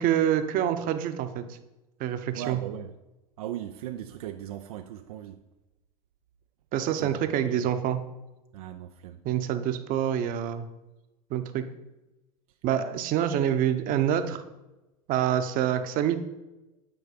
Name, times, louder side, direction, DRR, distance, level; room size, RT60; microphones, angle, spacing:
voice 1, 0.0-1.6 2.0-2.6 6.7-8.0 9.2-10.7 11.3-11.6 12.6-14.4 15.1-16.2, right 10 dB, 50° right, 0.8 m, -26 dB
voice 2, 2.4-2.9 3.4-5.4 6.9-7.2 7.5-7.6 8.5-9.2, right 12 dB, 75° right, 0.5 m, -38 dB
9.3 x 4.0 x 5.1 m
hypercardioid pair, 90°, 19 cm